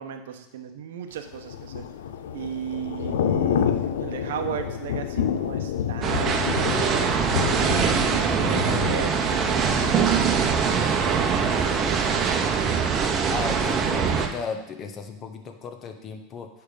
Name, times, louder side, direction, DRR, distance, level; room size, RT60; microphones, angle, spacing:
voice 1, 0.0-1.8 2.3-7.8 8.1-10.7 11.6-11.9, right 9 dB, 80° right, 6 dB, 0.9 m, -36 dB
Thunder / Rain, 1.3-11.2 11.5-11.8, left 9 dB, 80° left, 0.5 m, -29 dB
sound 1, 6.0-14.3, right 6 dB, 35° right, 0.9 m, -23 dB
voice 2, 13.3-16.5, left 5 dB, 35° left, 5 dB, 1.0 m, -35 dB
10.0 x 3.5 x 5.2 m, 0.87 s
hypercardioid pair, 105°, 0 cm